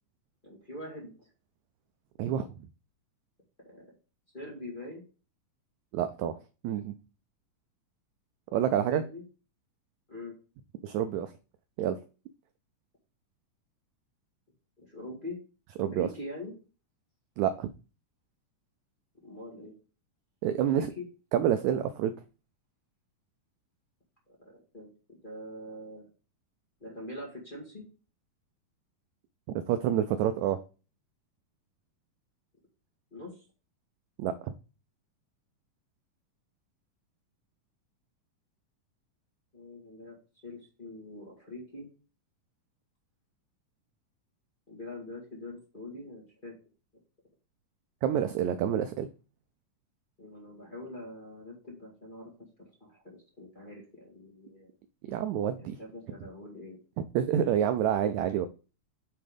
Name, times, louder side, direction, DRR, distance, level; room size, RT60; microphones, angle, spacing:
voice 1, 0.4-1.3 3.6-3.9 4.3-5.0 8.9-9.2 10.1-10.3 14.8-15.4 15.8-16.5 19.2-19.7 20.6-21.0 24.4-24.9 25.2-26.1 26.8-27.8 33.1-33.4 39.5-40.1 40.4-41.9 44.7-46.5 50.2-52.3 52.6-54.7 55.6-56.8, left 1 dB, 20° left, -4 dB, 1.8 m, -43 dB
voice 2, 5.9-6.3 6.6-6.9 8.5-9.0 10.8-11.3 11.8-12.0 15.8-16.1 17.4-17.7 20.4-20.9 21.3-22.1 29.7-30.6 34.2-34.5 48.0-49.1 55.1-55.8 57.0-58.5, right 10 dB, 85° right, 10 dB, 1.6 m, -28 dB
8.1 x 3.7 x 5.0 m, 0.34 s
omnidirectional pair, 3.8 m